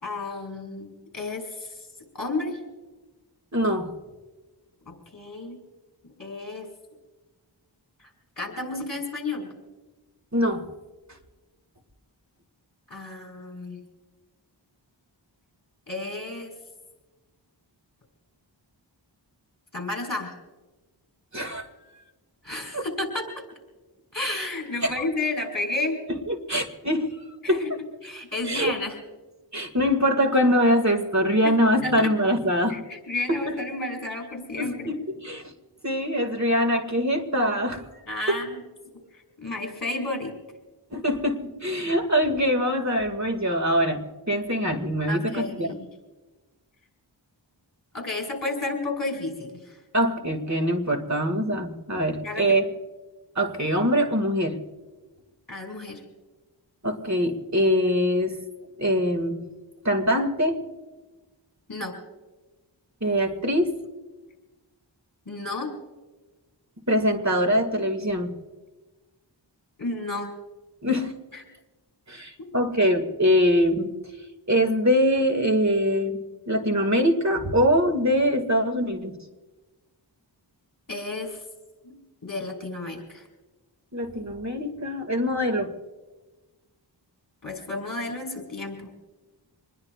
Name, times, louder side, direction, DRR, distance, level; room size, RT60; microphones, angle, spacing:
voice 1, 0.0-1.7 2.1-2.6 4.9-5.6 6.2-6.7 8.0-8.1 8.4-9.5 12.9-13.8 15.9-16.5 19.7-20.3 22.4-23.3 24.1-26.0 27.4-27.7 28.0-29.0 31.4-31.6 31.8-32.1 32.7-34.9 38.1-38.6 39.4-40.3 45.1-45.8 47.9-49.8 52.2-52.4 55.5-56.0 61.7-61.9 65.2-65.7 69.8-70.3 80.9-81.4 81.8-81.9 82.2-83.3 87.4-88.9, left 2 dB, 45° left, 4 dB, 5.0 m, -32 dB
voice 2, 3.5-3.9 10.3-10.7 21.3-21.7 22.7-22.8 24.8-24.9 26.1-27.7 28.4-28.7 29.5-32.8 33.3-33.6 34.6-35.5 35.8-37.8 38.3-38.4 40.9-44.0 44.3-45.7 49.9-52.6 53.4-54.6 56.8-58.4 58.8-59.4 59.8-60.6 63.0-63.7 66.9-68.4 70.8-71.1 72.1-73.9 74.5-76.2 76.5-79.1 83.9-85.7, equal, 35° right, 6 dB, 2.1 m, -23 dB
26.5 x 21.0 x 2.4 m, 1.2 s
wide cardioid pair, 50°, 46 cm